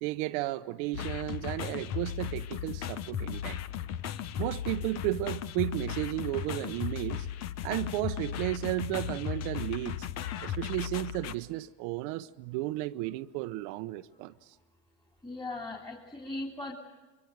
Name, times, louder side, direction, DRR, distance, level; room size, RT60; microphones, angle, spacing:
voice 1, 0.0-3.6 4.4-7.3 7.6-10.1 10.4-14.5, right 17 dB, 65° right, 0.8 m, -33 dB
sound 1, 0.9-11.4, left 9 dB, 50° left, 1.2 m, -36 dB
voice 2, 15.2-16.7, left 2 dB, 10° left, 3.4 m, -38 dB
26.0 x 23.5 x 9.1 m
supercardioid pair, 105°, 34 cm